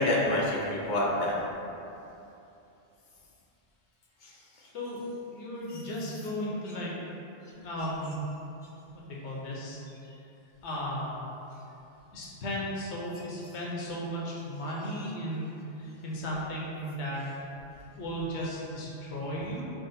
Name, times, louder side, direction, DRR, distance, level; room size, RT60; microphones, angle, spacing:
voice 1, 0.0-1.4 4.2-4.7 5.7-5.8 10.0-10.1 14.8-14.9, left 1 dB, 55° left, -4 dB, 0.6 m, -29 dB
voice 2, 5.3-6.9 7.6-8.2 9.1-9.8 10.6-11.2 12.1-17.2 18.0-19.6, equal, 75° left, -5 dB, 1.0 m, -35 dB
3.8 x 2.1 x 4.0 m, 2.8 s
omnidirectional pair, 1.2 m